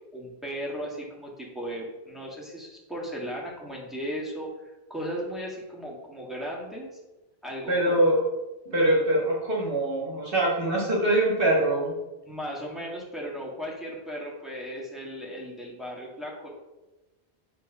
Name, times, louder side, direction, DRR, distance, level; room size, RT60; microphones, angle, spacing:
voice 1, 0.1-6.9 7.4-8.0 12.3-16.5, equal, ahead, -4 dB, 1.7 m, -36 dB
voice 2, 7.7-8.2 8.6-11.9, right 1 dB, 55° right, -3 dB, 1.7 m, -23 dB
7.5 x 3.3 x 5.4 m, 1.0 s
omnidirectional pair, 1.1 m